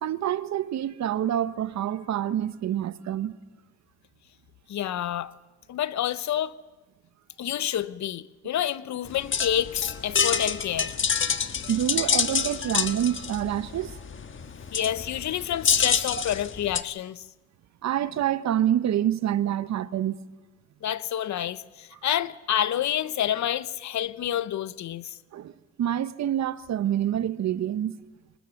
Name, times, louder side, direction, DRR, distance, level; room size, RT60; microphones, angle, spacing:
voice 1, 0.0-3.4 11.7-14.0 17.8-20.2 25.3-25.5 25.8-28.0, right 11 dB, 65° right, 1.0 m, -27 dB
voice 2, 4.7-5.3 5.7-6.5 7.4-10.9 14.7-17.2 20.8-25.2, left 11 dB, 65° left, 1.0 m, -28 dB
sound 1, 9.0-16.8, left 6 dB, 40° left, 1.4 m, -27 dB
28.0 x 19.5 x 7.2 m
cardioid pair, 90°, 30 cm